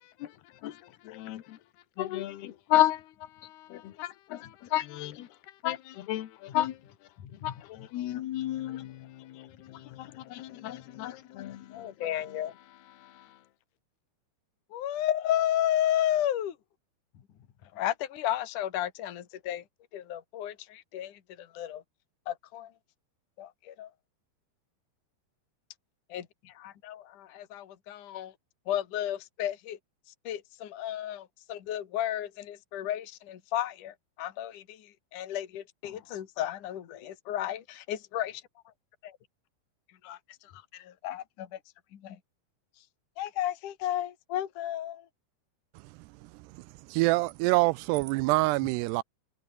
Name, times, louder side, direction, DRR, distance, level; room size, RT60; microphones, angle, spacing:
voice 1, 0.0-1.6 2.0-6.8 7.3-11.9 13.0-13.4, left 14 dB, 75° left, 3.5 m, -33 dB
voice 2, 11.7-12.5 14.7-16.6 17.6-19.6 19.9-21.8 22.3-22.7 23.4-23.9 26.1-28.3 28.7-29.8 30.2-38.4 39.0-39.2 40.0-41.6 41.9-42.2 43.2-45.1, left 12 dB, 55° left, 3.4 m, -33 dB
voice 3, 46.9-49.0, right 21 dB, 85° right, 2.7 m, -25 dB
omnidirectional pair, 4.7 m